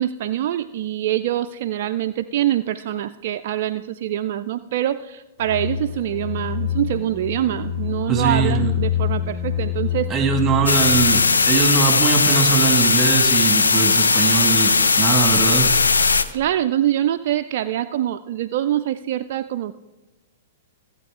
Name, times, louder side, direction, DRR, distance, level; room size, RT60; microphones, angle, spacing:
voice 1, 0.0-10.3 16.3-19.7, right 12 dB, 55° right, 9 dB, 0.3 m, -24 dB
sound 1, 5.4-11.4, left 10 dB, 30° left, 2.8 m, -26 dB
voice 2, 8.1-8.6 10.1-15.7, right 6 dB, 20° right, 5 dB, 1.9 m, -21 dB
sound 2, 10.7-16.2, left 4 dB, 80° left, 0.7 m, -17 dB
15.0 x 8.6 x 3.6 m, 1.1 s
figure-of-eight pair, 110°, 0 cm